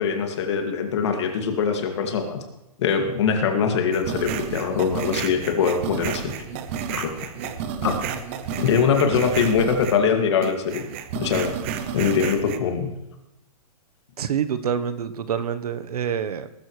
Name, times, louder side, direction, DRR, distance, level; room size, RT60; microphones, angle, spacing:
voice 1, 0.0-2.4 2.8-6.3 6.9-7.3 7.8-7.9 8.6-10.9 11.1-11.6 11.9-12.9, left 6 dB, 45° left, 4 dB, 2.2 m, -22 dB
sound 1, 3.9-10.1 10.4-12.6, right 8 dB, 20° right, 0.6 m, -31 dB
voice 2, 14.2-16.5, right 8 dB, 75° right, 12 dB, 1.1 m, -26 dB
20.5 x 13.0 x 3.2 m, 0.96 s
hypercardioid pair, 175°, 19 cm